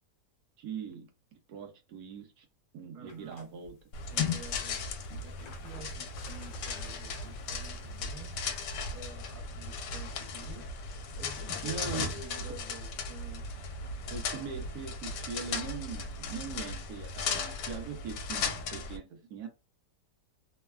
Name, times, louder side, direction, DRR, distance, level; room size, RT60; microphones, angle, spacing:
voice 1, 0.6-1.1 1.5-2.5 2.7-3.8 5.1-5.2 11.6-12.1 14.1-19.5, right 6 dB, 75° right, 1.1 m, -41 dB
voice 2, 2.9-3.4 4.1-4.9 5.2-8.3 8.9-10.7 11.2-13.5, right 4 dB, 45° right, 0.7 m, -49 dB
sound 1, 3.1-9.0, left 3 dB, 65° left, 0.9 m, -56 dB
sound 2, 3.9-19.0, left 4 dB, 80° left, 1.2 m, -36 dB
3.2 x 2.1 x 2.3 m
omnidirectional pair, 1.8 m